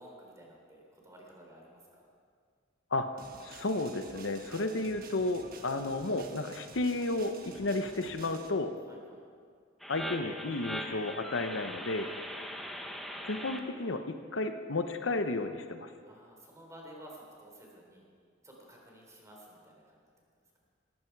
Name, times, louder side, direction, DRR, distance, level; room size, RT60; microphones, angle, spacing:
voice 1, 0.0-2.1 8.8-9.3 12.0-12.4 16.0-18.0 18.4-20.0, equal, 15° right, -1 dB, 3.8 m, -53 dB
sound 1, 3.2-8.5, right 4 dB, 50° right, 1.3 m, -51 dB
voice 2, 3.4-8.7 9.9-12.1 13.2-14.0 14.3-15.9, left 2 dB, 75° left, 8 dB, 0.9 m, -32 dB
sound 2, 9.8-13.6, equal, ahead, 1.2 m, -40 dB
18.5 x 15.0 x 4.7 m, 2.1 s
head